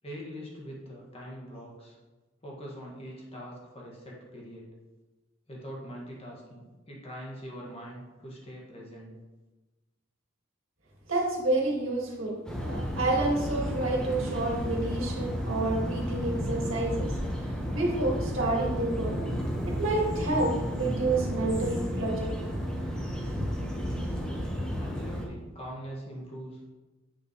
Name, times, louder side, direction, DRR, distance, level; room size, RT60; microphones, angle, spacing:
voice 1, 0.0-2.0 2.4-4.7 5.5-9.1 24.7-26.7, equal, 30° left, -3 dB, 1.6 m, -43 dB
voice 2, 11.1-17.1 17.5-19.2 19.7-22.3 23.4-23.5, right 2 dB, 90° right, -2 dB, 1.9 m, -29 dB
sound 1, 12.4-25.2, equal, 5° left, 1.1 m, -32 dB
8.4 x 6.4 x 3.1 m, 1.2 s
head